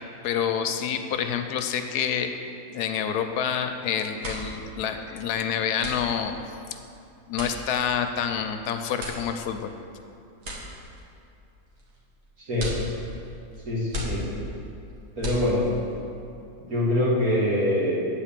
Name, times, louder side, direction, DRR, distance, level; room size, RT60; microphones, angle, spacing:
voice 1, 0.2-2.3 2.7-6.4 7.3-9.7, left 8 dB, 85° left, 7 dB, 1.1 m, -27 dB
sound 1, 3.7-3.8 4.0-16.0, equal, 85° right, 2.1 m, -37 dB
voice 2, 12.4-12.7 13.6-14.3 15.2-15.7 16.6-18.1, left 1 dB, 65° right, -8 dB, 2.7 m, -24 dB
8.9 x 4.3 x 7.4 m, 2.6 s
omnidirectional pair, 1.7 m